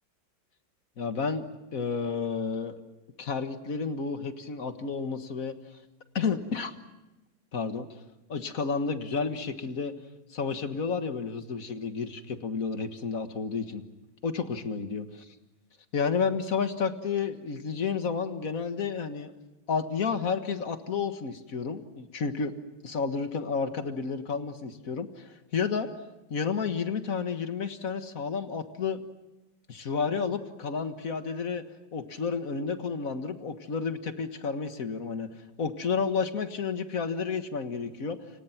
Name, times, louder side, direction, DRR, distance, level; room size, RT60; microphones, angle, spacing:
voice 1, 1.0-2.8 3.2-5.6 6.2-6.7 7.5-7.9 8.3-9.9 10.3-13.8 14.2-15.0 15.9-19.3 19.7-22.5 22.8-25.9 26.3-29.0 29.7-31.6 31.9-35.3 35.6-38.2, left 5 dB, 45° left, 8 dB, 1.9 m, -31 dB
29.5 x 26.0 x 5.9 m, 1.0 s
omnidirectional pair, 2.1 m